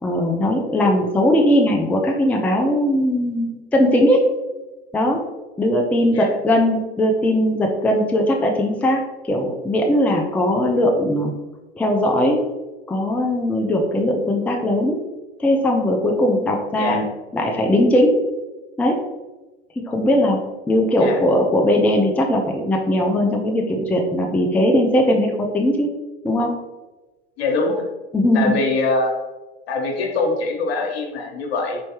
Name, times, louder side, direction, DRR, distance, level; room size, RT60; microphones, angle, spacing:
voice 1, 0.0-4.2 4.9-5.2 5.6-9.0 9.3-11.3 11.8-12.4 12.9-15.0 15.4-17.1 17.3-18.2 18.8-19.0 19.8-20.4 20.7-25.9 26.2-26.6 28.1-28.6, left 1 dB, 5° left, 1 dB, 0.4 m, -19 dB
voice 2, 27.4-27.8 28.3-29.1 29.7-31.8, left 3 dB, 70° left, 1 dB, 1.1 m, -23 dB
4.4 x 3.1 x 2.9 m, 1.1 s
hypercardioid pair, 85°, 32 cm